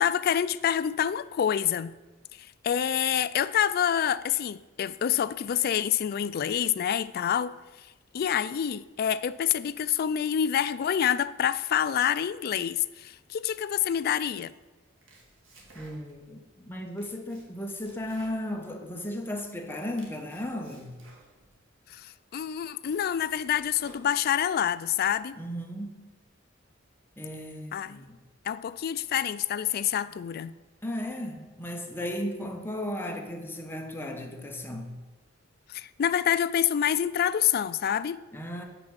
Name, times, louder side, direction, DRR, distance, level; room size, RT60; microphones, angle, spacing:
voice 1, 0.0-1.9 2.4-7.5 8.1-14.5 21.9-25.4 27.7-28.0 28.4-30.5 35.7-38.2, left 9 dB, 50° left, 0.3 m, -27 dB
Domestic sounds home sounds, 14.8-16.3 16.7-19.2 19.6-21.6 22.1-22.2 22.6-24.6, right 2 dB, 70° right, 2.0 m, -56 dB
voice 2, 15.7-21.0 25.4-26.1 27.2-28.2 30.8-35.0 38.3-38.6, left 1 dB, 10° left, 1.0 m, -35 dB
7.2 x 6.0 x 6.4 m
head